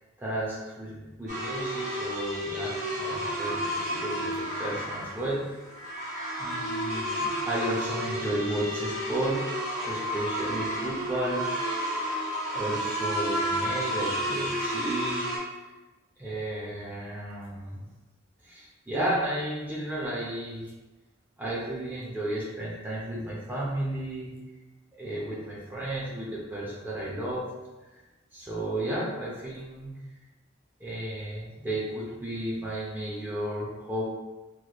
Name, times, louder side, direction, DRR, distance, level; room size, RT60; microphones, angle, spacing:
voice 1, 0.2-5.4 6.4-9.4 9.8-11.5 12.5-15.3 16.2-17.8 18.4-20.6 21.4-24.3 25.0-27.4 28.3-29.9 30.8-34.0, right 1 dB, 10° right, -6 dB, 0.6 m, -33 dB
sound 1, 1.3-15.4, equal, 40° right, 1.0 m, -31 dB
3.1 x 3.0 x 2.3 m, 1.1 s
head